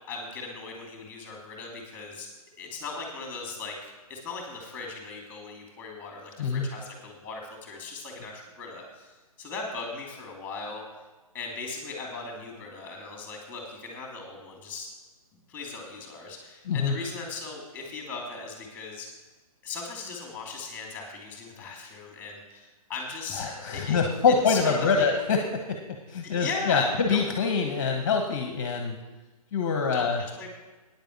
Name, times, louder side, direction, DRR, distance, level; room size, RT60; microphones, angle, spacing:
voice 1, 0.1-2.3 2.6-9.1 9.4-10.8 11.3-14.9 15.5-19.1 19.6-24.0 24.5-25.0 26.2-27.2 29.9-30.5, left 3 dB, 10° left, 1 dB, 2.6 m, -38 dB
voice 2, 16.6-17.0 23.3-29.0 29.5-30.2, left 5 dB, 35° left, 4 dB, 1.1 m, -25 dB
9.6 x 8.8 x 7.3 m, 1.2 s
figure-of-eight pair, 130°, 19 cm